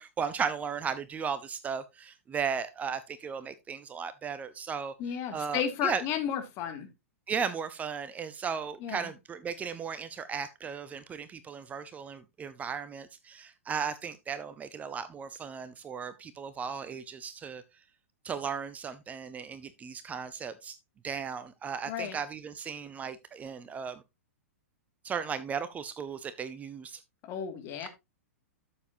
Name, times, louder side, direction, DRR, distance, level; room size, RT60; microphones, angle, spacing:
voice 1, 0.0-6.0 7.3-17.6 18.2-20.8 21.0-24.0 25.0-27.0 27.8-27.9, right 6 dB, 20° right, 0.7 m, -36 dB
voice 2, 5.0-6.9 8.8-9.1 21.9-22.2 27.3-27.9, left 8 dB, 35° left, 2.3 m, -33 dB
12.5 x 7.0 x 2.7 m
figure-of-eight pair, 105°, 8 cm